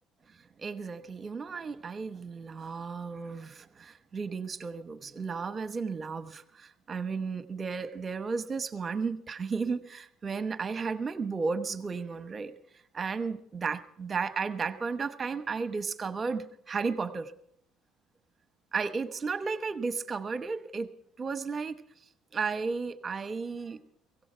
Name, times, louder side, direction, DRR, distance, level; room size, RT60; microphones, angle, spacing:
voice 1, 0.6-12.5 12.9-17.3 18.7-20.9 21.2-21.8 22.3-23.8, right 5 dB, 30° right, 12 dB, 1.0 m, -34 dB
16.5 x 16.5 x 4.5 m, 0.67 s
supercardioid pair, 90°, 0 cm